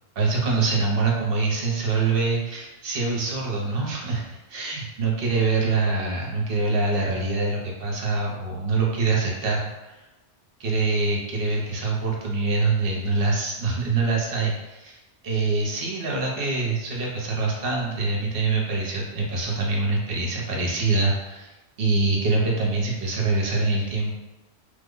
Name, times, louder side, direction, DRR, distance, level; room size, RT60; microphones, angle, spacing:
voice 1, 0.2-10.0 10.6-15.0 15.2-24.1, right 3 dB, 55° right, -2 dB, 0.9 m, -24 dB
3.2 x 2.0 x 3.7 m, 1.0 s
omnidirectional pair, 1.2 m